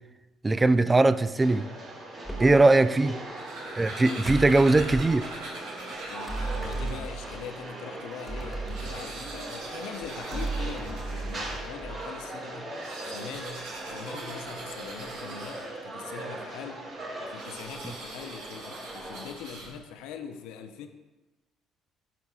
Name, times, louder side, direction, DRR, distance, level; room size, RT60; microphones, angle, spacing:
voice 1, 0.4-1.7 2.4-3.2 3.8-5.3, right 2 dB, 20° right, 0.3 m, -20 dB
sound 1, 1.4-19.2, right 2 dB, 50° right, 2.4 m, -40 dB
sound 2, 2.2-2.7 4.2-5.2 6.3-7.5 8.3-9.6 10.3-12.2, right 2 dB, 5° left, 1.4 m, -35 dB
sound 3, 3.2-7.2 7.8-7.9 8.1-8.2 8.5-11.6 12.6-16.0 17.3-20.0, right 2 dB, 75° right, 1.2 m, -43 dB
voice 2, 6.1-12.7 13.1-16.8 17.2-20.9, left 7 dB, 75° left, 0.5 m, -42 dB
11.5 x 4.7 x 2.4 m
hypercardioid pair, 60°, 0 cm